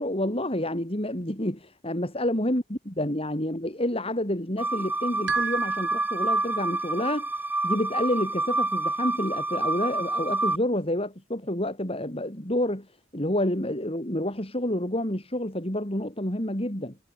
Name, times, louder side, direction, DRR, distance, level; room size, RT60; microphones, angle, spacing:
voice 1, 0.0-7.3 7.6-12.9 13.1-17.0, left 1 dB, 30° left, 4.1 m, -29 dB
sound 1, 4.6-10.6, right 2 dB, 10° right, 6.1 m, -28 dB
sound 2, 5.3-6.8, right 6 dB, 60° right, 6.1 m, -34 dB
head